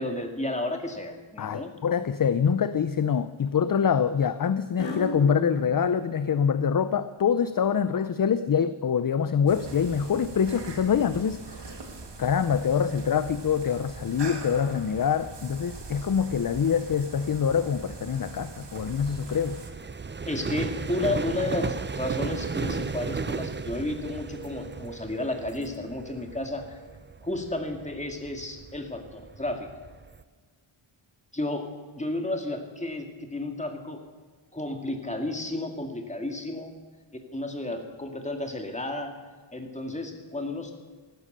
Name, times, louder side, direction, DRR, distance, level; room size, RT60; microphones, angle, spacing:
voice 1, 0.0-1.7 20.3-26.8 27.2-29.7 31.3-34.0 34.5-36.7 37.3-39.1 39.5-40.7, left 2 dB, 15° left, 4 dB, 2.1 m, -32 dB
sound 1, 1.0-1.4 2.0-2.5 4.8-6.7, left 2 dB, 65° left, 2.8 m, -37 dB
voice 2, 1.4-11.7 12.2-19.6, left 7 dB, 45° left, 13 dB, 0.6 m, -25 dB
sound 2, 9.5-19.7, right 3 dB, 55° right, 1.9 m, -42 dB
sound 3, 13.7-30.2, right 5 dB, 25° right, 0.5 m, -36 dB
15.0 x 12.5 x 6.7 m, 1.5 s
wide cardioid pair, 100°, 50 cm